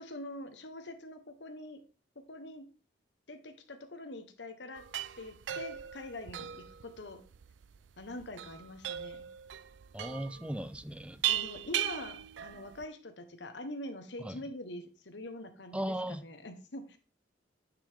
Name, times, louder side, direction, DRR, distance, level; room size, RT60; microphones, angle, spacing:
voice 1, 0.0-1.8 2.3-2.7 3.3-4.8 5.2-7.2 8.0-9.3 11.3-17.0, left 1 dB, 75° left, 1.4 m, -44 dB
sound 1, 4.7-12.8, right 11 dB, 85° right, 0.4 m, -38 dB
voice 2, 9.9-11.2 14.2-14.4 15.7-16.2, right 1 dB, 5° right, 0.4 m, -37 dB
9.9 x 6.2 x 3.7 m
head